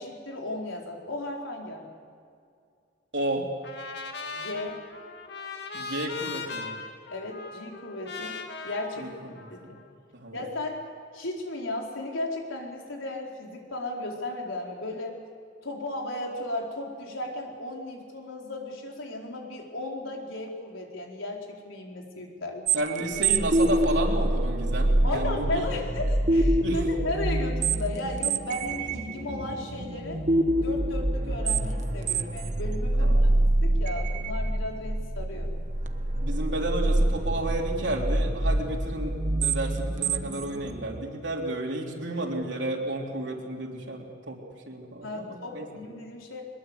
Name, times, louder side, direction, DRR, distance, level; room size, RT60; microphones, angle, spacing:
voice 1, 0.0-1.8 4.3-4.8 7.1-8.4 8.6-9.8 10.3-10.8 11.1-15.2 15.6-22.7 25.0-30.2 30.5-33.2 33.6-35.5 45.0-46.4, left 2 dB, 85° left, 0 dB, 4.5 m, -35 dB
voice 2, 3.1-3.5 5.7-6.8 9.0-9.7 10.1-10.4 22.7-25.7 26.5-26.8 32.9-33.3 36.2-44.4 44.7-45.7, right 1 dB, 65° right, -2 dB, 3.7 m, -32 dB
Trumpet, 3.6-9.9, left 4 dB, 55° left, 2.3 m, -39 dB
sound 1, 22.7-41.0, right 1 dB, 40° right, 1.2 m, -26 dB
23.5 x 21.5 x 8.2 m, 2.3 s
head